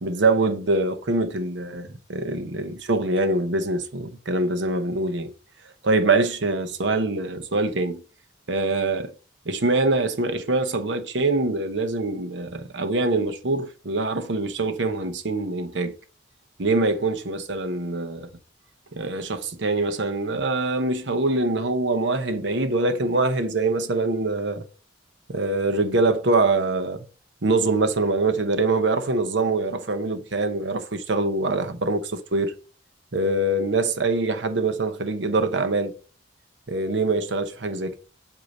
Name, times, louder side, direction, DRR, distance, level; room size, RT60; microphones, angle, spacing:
voice 1, 0.0-5.3 5.8-8.0 8.5-9.1 9.5-15.9 16.6-18.3 19.0-24.6 25.3-27.0 27.4-32.5 33.1-35.9 36.7-38.0, right 2 dB, 70° right, 0.9 m, -24 dB
7.9 x 2.8 x 5.3 m
head